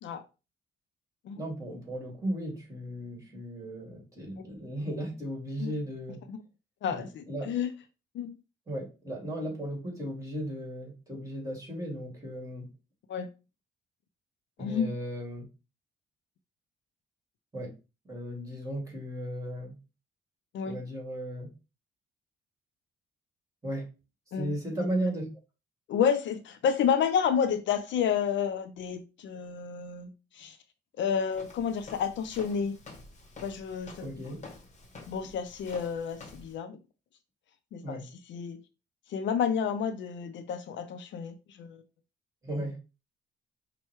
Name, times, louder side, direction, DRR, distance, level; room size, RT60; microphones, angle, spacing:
voice 1, 1.4-6.2 6.9-7.5 8.7-12.7 14.6-15.5 17.5-17.7 18.0-19.7 20.7-21.5 23.6-23.9 24.3-25.3 34.0-34.4 37.8-38.1 42.4-42.8, right 1 dB, 15° right, -1 dB, 2.2 m, -36 dB
voice 2, 6.8-7.7 8.1-8.3 13.1-13.3 14.6-14.9 20.5-20.8 24.3-24.5 25.9-30.6 31.0-32.8 33.4-34.3 35.1-36.8 37.7-38.0 38.3-38.6 39.1-41.8, left 7 dB, 70° left, 10 dB, 0.5 m, -30 dB
Walk footsteps, 31.3-36.5, left 3 dB, 35° left, 1.0 m, -49 dB
5.5 x 2.2 x 3.1 m, 0.30 s
cardioid pair, 90°, 20 cm